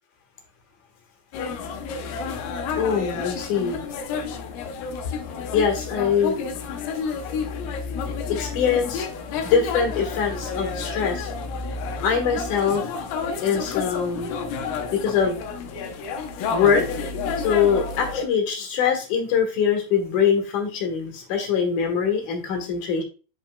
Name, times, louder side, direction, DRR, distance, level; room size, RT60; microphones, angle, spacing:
sound 1, 1.3-18.2, left 5 dB, 85° left, 2.0 m, -30 dB
voice 1, 2.8-3.8 5.5-6.3 8.4-9.1 9.4-11.3 12.0-12.8 13.4-14.3 14.9-15.5 16.5-16.8 17.4-23.0, left 7 dB, 60° left, 3 dB, 2.3 m, -23 dB
11.0 x 4.4 x 2.2 m, 0.34 s
omnidirectional pair, 5.2 m